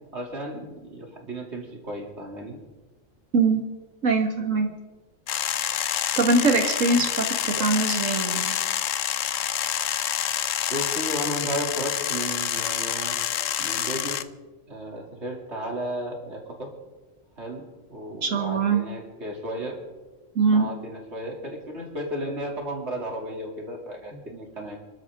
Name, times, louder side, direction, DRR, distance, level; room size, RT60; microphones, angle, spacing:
voice 1, 0.1-2.6 7.6-7.7 10.7-13.2 13.6-14.2 14.7-16.7 17.4-17.6 17.9-19.8 20.5-24.8, right 1 dB, 55° right, -1 dB, 3.4 m, -34 dB
voice 2, 4.0-4.7 6.2-8.6 18.2-18.8 20.4-20.7, right 3 dB, 70° right, 4 dB, 2.3 m, -22 dB
sound 1, 5.3-14.2, left 10 dB, 75° left, 1.1 m, -27 dB
29.0 x 12.5 x 3.8 m, 1.1 s
omnidirectional pair, 1.4 m